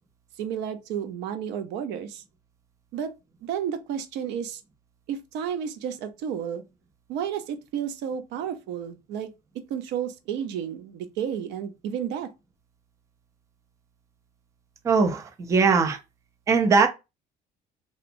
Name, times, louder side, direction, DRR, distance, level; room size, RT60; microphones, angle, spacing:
voice 1, 0.4-2.2 2.9-3.1 3.4-4.6 5.1-6.6 7.1-9.3 9.7-12.3, right 8 dB, 75° right, 0.5 m, -31 dB
voice 2, 14.8-16.0 16.5-16.9, right 4 dB, 15° right, 0.3 m, -20 dB
2.8 x 2.1 x 2.6 m
cardioid pair, 180°, 18 cm